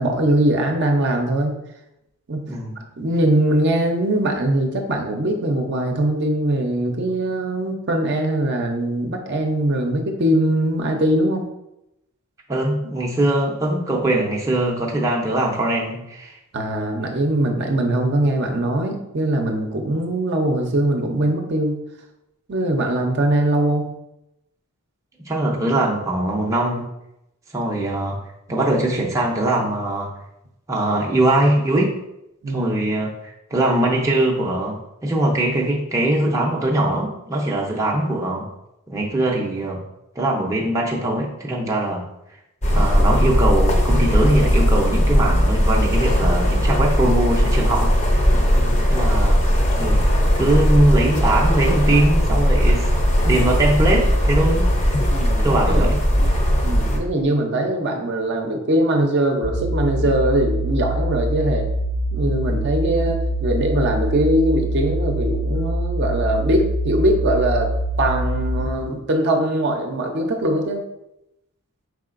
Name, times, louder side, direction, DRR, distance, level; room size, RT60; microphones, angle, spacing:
voice 1, 0.0-1.6 2.3-2.5 3.0-11.4 16.5-21.8 22.5-23.9 32.4-32.8 48.5-49.0 55.1-55.9 56.2-56.3 56.6-61.7 62.1-67.7 68.0-70.8, right 1 dB, 50° right, 3 dB, 0.6 m, -21 dB
voice 2, 2.5-2.8 12.5-16.4 25.3-26.9 27.5-28.2 28.5-30.1 30.7-32.0 32.5-38.5 38.9-39.8 40.2-42.0 42.7-48.0 48.9-49.4 49.8-52.9 53.2-55.0 55.4-56.0 60.0-60.1, right 1 dB, 15° right, -3 dB, 0.6 m, -21 dB
sound 1, 42.6-57.0, equal, 30° left, 0.6 m, -18 dB
sound 2, 59.4-68.7, right 1 dB, 80° left, 0.7 m, -24 dB
4.8 x 3.8 x 2.5 m, 0.86 s
head